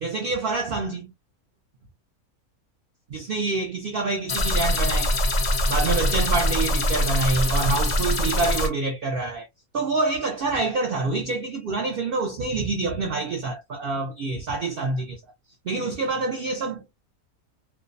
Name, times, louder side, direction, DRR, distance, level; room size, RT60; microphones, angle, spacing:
voice 1, 0.0-1.1 3.1-5.1 5.7-9.5 9.7-15.2 15.6-16.9, right 3 dB, 85° right, 0.5 m, -26 dB
sound 1, 4.3-8.7, left 1 dB, 50° left, 0.5 m, -23 dB
2.5 x 2.0 x 2.4 m
omnidirectional pair, 1.6 m